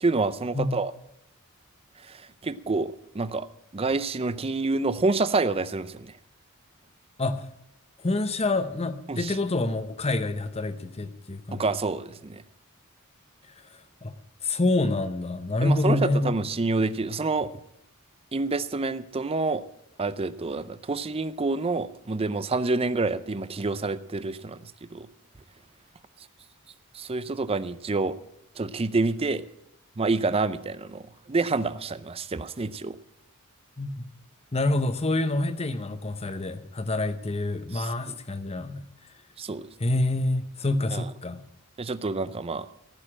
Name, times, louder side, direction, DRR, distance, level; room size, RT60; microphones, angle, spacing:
voice 1, 0.0-0.9 2.0-3.5 3.7-6.1 9.1-9.4 11.5-12.4 15.6-17.5 18.3-19.6 20.0-24.6 24.9-25.1 26.9-28.1 28.6-29.4 30.0-33.0 37.7-38.1 39.4-39.7 40.9-41.0 41.8-42.7, right 3 dB, 25° right, 15 dB, 0.5 m, -28 dB
voice 2, 8.0-11.6 14.0-14.1 14.4-16.3 33.8-34.1 34.5-38.8 39.8-41.4, left 2 dB, 30° left, 11 dB, 0.8 m, -27 dB
15.0 x 6.6 x 8.7 m, 0.81 s
head